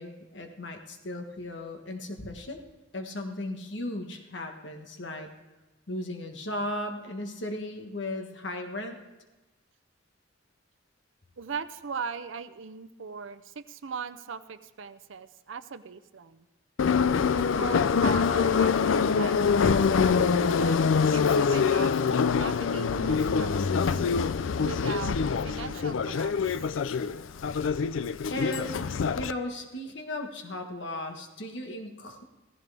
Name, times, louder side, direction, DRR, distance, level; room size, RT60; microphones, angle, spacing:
voice 1, 0.0-2.6 2.9-5.3 5.9-9.0 28.3-28.9 29.1-32.2, left 1 dB, 65° left, 4 dB, 1.4 m, -36 dB
voice 2, 11.4-16.4 17.3-23.8 24.6-25.2 25.4-26.3, right 5 dB, 80° right, 12 dB, 0.6 m, -39 dB
Subway metro underground, 16.8-29.3, left 5 dB, 85° left, 0.4 m, -25 dB
16.5 x 14.5 x 3.5 m, 1.1 s
head